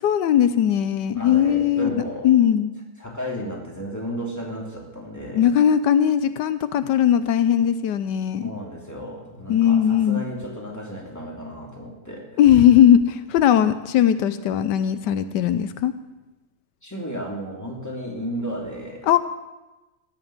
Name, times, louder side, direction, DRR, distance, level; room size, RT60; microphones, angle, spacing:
voice 1, 0.0-1.9 2.2-2.7 5.3-8.5 9.5-10.3 12.4-15.9 19.1-19.2, left 10 dB, 85° left, 12 dB, 1.3 m, -19 dB
voice 2, 1.1-2.3 3.0-5.5 8.4-12.3 16.8-19.1, equal, 10° left, -1 dB, 3.0 m, -33 dB
16.0 x 7.4 x 8.8 m, 1.1 s
omnidirectional pair, 1.8 m